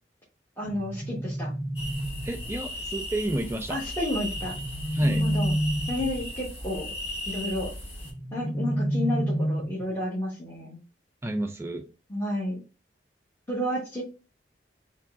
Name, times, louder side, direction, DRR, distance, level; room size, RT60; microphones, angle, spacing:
sound 1, 0.6-2.6 4.3-6.3 8.0-10.0, right 1 dB, 80° left, 1.5 m, -29 dB
voice 1, 0.6-1.5 3.7-4.6 5.0-5.6 5.9-6.9 7.3-7.7 8.3-10.8 12.1-12.6 13.5-14.0, left 1 dB, 15° left, 1.1 m, -31 dB
sound 2, 1.8-8.1, left 1 dB, 35° left, 1.2 m, -36 dB
voice 2, 2.2-3.8 4.9-5.3 11.2-11.8, right 1 dB, 15° right, 0.3 m, -30 dB
3.5 x 3.0 x 3.5 m
head